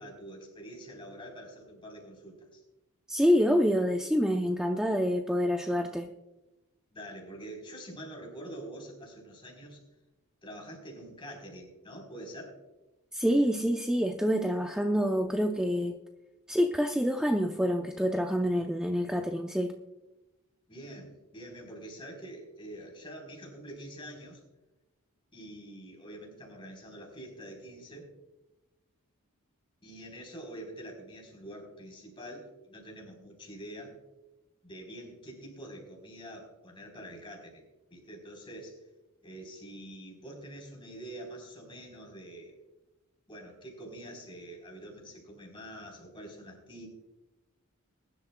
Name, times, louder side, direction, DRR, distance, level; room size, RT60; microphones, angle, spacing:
voice 1, 0.0-2.6 6.9-9.8 10.4-12.6 20.7-24.4 25.3-28.1 29.8-33.9 34.6-37.6 37.9-38.8 39.2-42.6 43.3-46.9, right 1 dB, 25° left, 0 dB, 3.8 m, -46 dB
voice 2, 3.1-6.1 13.1-16.0 16.5-19.8, equal, 5° right, 3 dB, 0.5 m, -27 dB
22.0 x 11.5 x 2.2 m, 1.0 s
head